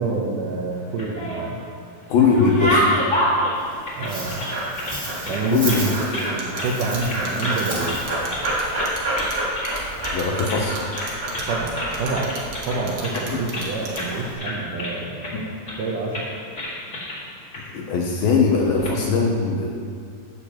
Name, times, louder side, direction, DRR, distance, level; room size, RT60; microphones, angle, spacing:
voice 1, 0.0-1.6 4.0-4.4 5.3-5.8 6.1-8.0 11.4-12.4 12.6-15.5 15.8-16.2, right 3 dB, 85° right, -3 dB, 1.8 m, -27 dB
sound 1, 0.8-1.7 2.0-5.0 5.2-6.3 6.6-6.7 7.0-7.6 7.8-8.5 8.8-9.8 10.0-10.2 10.5-10.6 10.9-11.5 11.8-13.7 13.9-14.1 14.4-15.3 15.7-15.9 16.1-16.3 16.6-17.2 17.5-17.6 18.6-18.9, equal, 35° left, 1.4 m, -27 dB
voice 2, 2.1-3.0 5.5-5.9 10.1-10.8 13.3-13.4 15.3-15.4 17.7-19.7, left 5 dB, 75° left, -1 dB, 2.3 m, -20 dB
Dog, 3.5-14.3, right 1 dB, 20° right, 1.6 m, -29 dB
sound 2, 6.4-14.3, right 5 dB, 70° right, 3.0 m, -37 dB
16.5 x 6.5 x 3.0 m, 2.2 s
omnidirectional pair, 4.8 m